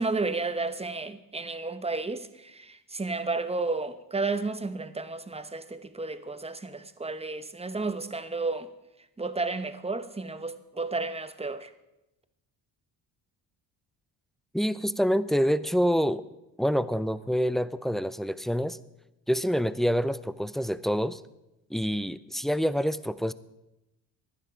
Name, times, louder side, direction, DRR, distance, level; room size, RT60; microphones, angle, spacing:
voice 1, 0.0-8.7 9.2-11.7, right 3 dB, 15° right, 1.0 m, -32 dB
voice 2, 14.5-16.2 16.6-18.8 19.3-21.2 21.7-23.3, equal, ahead, 0.5 m, -26 dB
15.0 x 11.0 x 4.9 m
cardioid pair, 75°, 41 cm